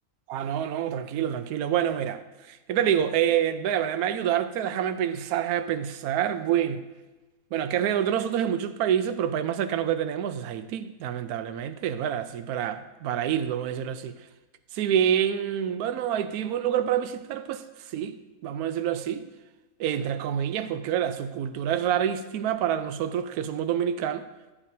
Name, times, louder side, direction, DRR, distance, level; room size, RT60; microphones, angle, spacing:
voice 1, 0.3-6.9 7.5-14.2 14.7-19.3 19.8-24.2, right 9 dB, 75° right, 1.1 m, -27 dB
13.0 x 8.4 x 2.7 m
omnidirectional pair, 1.7 m